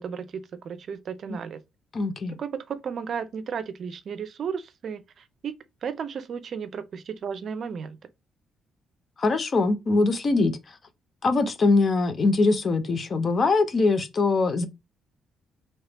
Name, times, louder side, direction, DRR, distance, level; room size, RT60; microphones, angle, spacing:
voice 1, 0.0-1.6 2.4-5.5 5.8-8.0, right 6 dB, 55° right, 0.5 m, -34 dB
voice 2, 1.9-2.4 9.2-10.6 11.2-14.7, left 3 dB, 40° left, 0.6 m, -22 dB
2.9 x 2.7 x 3.4 m
cardioid pair, 90°, 0 cm